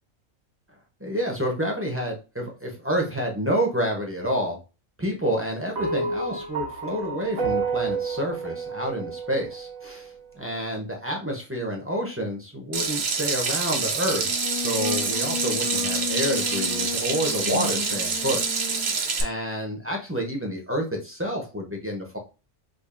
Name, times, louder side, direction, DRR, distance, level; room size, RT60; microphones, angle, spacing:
voice 1, 1.0-4.6 5.0-18.4 18.7-18.8 19.2-22.2, equal, 15° right, -1 dB, 0.5 m, -29 dB
sound 1, 5.8-10.2, right 4 dB, 90° right, 1.4 m, -30 dB
Water tap faucet / Sink (filling or washing), 12.7-19.2, right 5 dB, 55° right, 0.9 m, -27 dB
Singing, 14.1-19.0, left 5 dB, 90° left, 1.0 m, -33 dB
5.2 x 2.4 x 2.5 m, 0.31 s
omnidirectional pair, 1.4 m